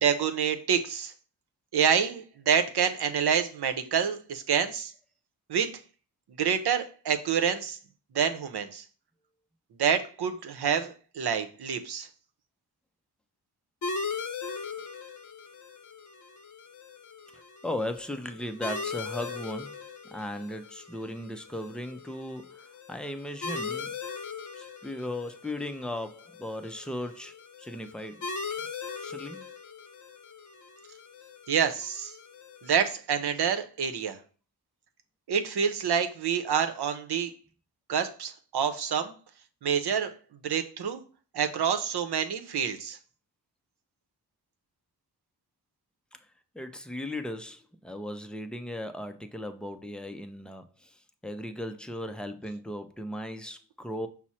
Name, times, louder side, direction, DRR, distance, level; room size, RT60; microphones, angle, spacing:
voice 1, 0.0-1.1 1.7-4.9 5.5-5.8 6.4-7.8 8.1-8.8 9.8-12.1 31.5-32.1 32.6-34.2 35.3-37.3 37.9-39.1 39.6-40.1 40.4-41.0 41.3-43.0, right 7 dB, 75° right, 9 dB, 0.7 m, -27 dB
sound 1, 13.8-33.0, left 4 dB, 45° left, 0.7 m, -40 dB
voice 2, 17.6-19.7 20.1-22.5 22.9-23.9 24.6-27.3 27.6-28.2 29.0-29.4 46.5-50.6 51.2-54.1, left 1 dB, ahead, 7 dB, 0.4 m, -36 dB
6.0 x 2.1 x 4.2 m, 0.37 s
wide cardioid pair, 90°, 40 cm